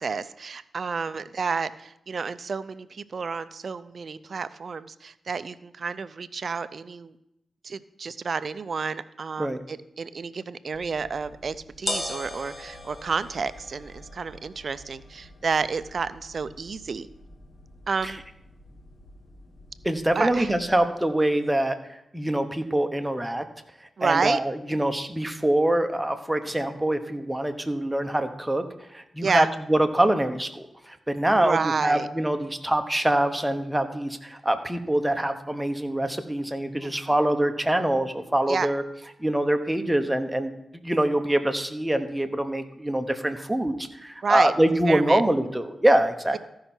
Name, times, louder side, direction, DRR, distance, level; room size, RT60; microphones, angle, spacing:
voice 1, 0.0-7.1 7.6-17.1 17.9-18.2 20.1-20.5 24.0-24.4 29.2-29.5 31.4-32.1 36.8-37.1 38.5-38.7 44.2-45.2, right 5 dB, 60° right, 14 dB, 0.5 m, -30 dB
sound 1, 10.7-20.8, left 2 dB, 40° left, 1.8 m, -41 dB
voice 2, 19.8-23.4 24.0-28.7 28.9-38.8 39.2-40.5 40.8-46.4, right 1 dB, 10° right, 7 dB, 1.1 m, -24 dB
14.5 x 5.6 x 4.4 m, 0.83 s
cardioid pair, 60°, 0 cm